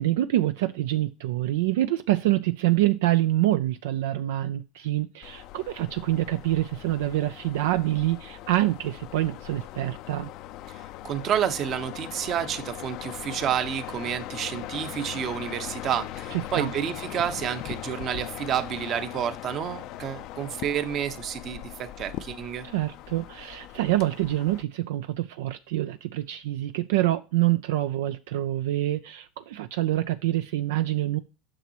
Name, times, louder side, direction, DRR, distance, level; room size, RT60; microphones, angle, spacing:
voice 1, 0.0-10.3 16.3-16.7 22.6-31.2, right 15 dB, 80° right, 0.4 m, -26 dB
sound 1, 5.2-24.6, left 14 dB, 60° left, 0.5 m, -40 dB
voice 2, 10.7-22.7, right 9 dB, 45° right, 1.0 m, -30 dB
8.9 x 6.1 x 2.9 m
supercardioid pair, 100°, 0 cm